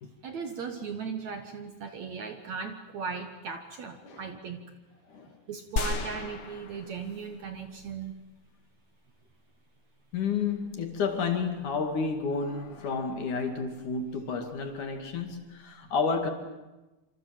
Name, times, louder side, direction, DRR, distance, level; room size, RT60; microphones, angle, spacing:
voice 1, 0.2-4.7 5.5-8.1, right 5 dB, 60° right, 2.2 m, -37 dB
sound 1, 5.8-7.5 8.0-8.1, left 4 dB, 75° left, 0.9 m, -34 dB
voice 2, 10.1-16.3, left 5 dB, 55° left, 3.6 m, -31 dB
27.0 x 26.0 x 7.6 m
omnidirectional pair, 4.4 m